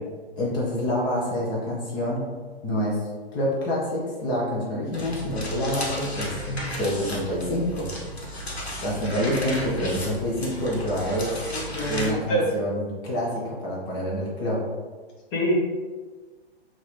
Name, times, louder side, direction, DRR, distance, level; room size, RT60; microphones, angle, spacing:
voice 1, 0.4-2.3 2.6-3.0 3.3-6.3 6.8-7.9 8.8-11.3 11.8-14.6, equal, 15° left, -4 dB, 0.4 m, -27 dB
sound 1, 4.9-12.1, equal, 85° left, 1.0 m, -34 dB
voice 2, 11.5-12.4 15.3-15.5, equal, 30° left, -3 dB, 0.9 m, -26 dB
3.9 x 2.4 x 3.0 m, 1.4 s
figure-of-eight pair, 115°, 31 cm